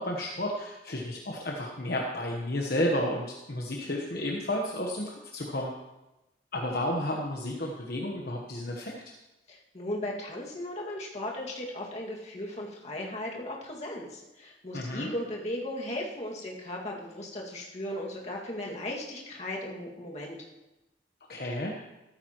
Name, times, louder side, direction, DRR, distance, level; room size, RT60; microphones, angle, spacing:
voice 1, 0.0-5.7 6.5-9.1 14.7-15.1 21.3-21.8, left 1 dB, 55° left, -1 dB, 1.2 m, -32 dB
voice 2, 9.5-20.5, left 1 dB, 40° left, -2 dB, 2.1 m, -37 dB
14.0 x 13.5 x 3.1 m, 1.0 s
head